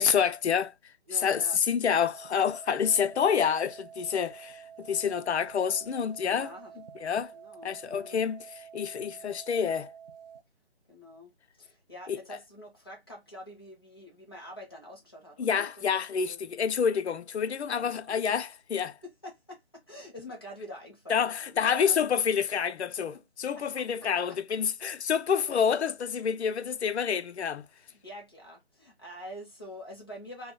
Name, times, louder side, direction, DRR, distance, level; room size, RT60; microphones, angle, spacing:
voice 1, 0.0-0.9 1.2-6.5 7.0-7.3 7.6-9.9 12.1-12.2 15.4-19.0 21.1-27.7, left 7 dB, 85° left, 0.5 m, -28 dB
voice 2, 1.1-1.6 6.2-6.7 7.3-8.2 9.1-9.3 10.9-16.6 17.7-18.2 19.0-22.0 23.1-23.2 23.6-24.4 27.7-30.5, left 1 dB, 25° left, 0.6 m, -46 dB
sound 1, 1.8-10.4, right 8 dB, 60° right, 0.6 m, -49 dB
2.2 x 2.1 x 3.4 m
figure-of-eight pair, 170°, 32 cm